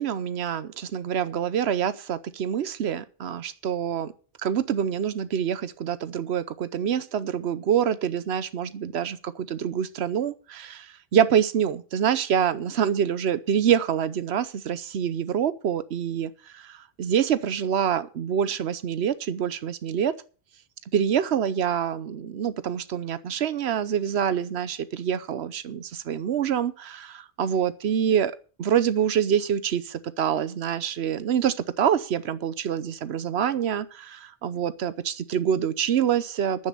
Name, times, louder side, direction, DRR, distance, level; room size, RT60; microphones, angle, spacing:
voice 1, 0.0-4.1 4.4-20.1 20.9-36.7, right 8 dB, 85° right, 13 dB, 1.0 m, -26 dB
10.5 x 8.0 x 6.8 m, 0.38 s
omnidirectional pair, 1.1 m